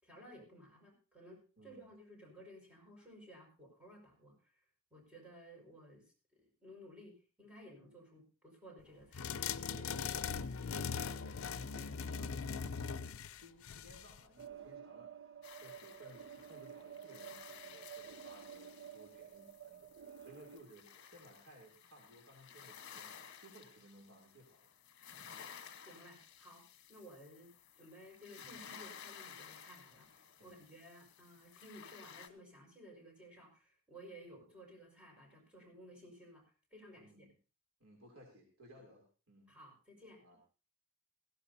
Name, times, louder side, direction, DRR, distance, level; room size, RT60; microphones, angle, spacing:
voice 1, 0.0-4.6 4.9-9.3 25.9-36.4 36.7-37.3 39.5-40.2, equal, 5° right, -1 dB, 5.4 m, -56 dB
voice 2, 1.6-1.9 9.7-12.9 13.4-15.3 15.6-24.7 30.4-30.6 36.9-37.3 37.8-39.5 40.2-40.4, right 1 dB, 85° right, -1 dB, 3.2 m, -59 dB
sound 1, 9.1-14.2, left 6 dB, 85° left, 0.6 m, -40 dB
sound 2, 14.4-20.6, right 9 dB, 60° right, 0.6 m, -52 dB
sound 3, 15.4-32.3, left 8 dB, 60° left, 1.2 m, -55 dB
17.0 x 15.5 x 2.8 m, 0.34 s
head